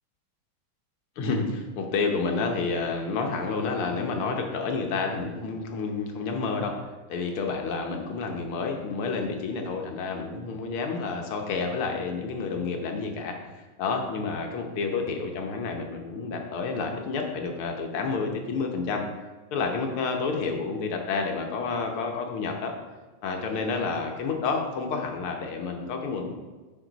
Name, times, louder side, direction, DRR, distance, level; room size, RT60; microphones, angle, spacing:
voice 1, 1.2-6.8 7.1-13.4 13.8-19.1 19.5-22.7 23.2-26.3, left 4 dB, 80° left, 2 dB, 1.9 m, -29 dB
10.5 x 4.9 x 3.9 m, 1.3 s
omnidirectional pair, 2.4 m